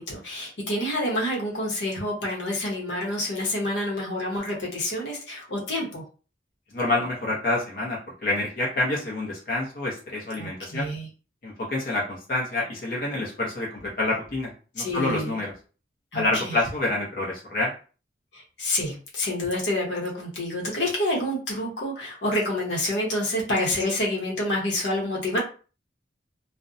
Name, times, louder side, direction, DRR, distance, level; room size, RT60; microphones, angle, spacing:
voice 1, 0.0-6.0 10.4-11.1 14.8-15.4 16.1-16.6 18.3-25.4, left 1 dB, 80° left, -2 dB, 0.9 m, -28 dB
voice 2, 6.7-10.9 11.4-15.5 16.1-17.7, left 2 dB, 50° left, -4 dB, 0.7 m, -27 dB
2.5 x 2.1 x 2.5 m, 0.37 s
head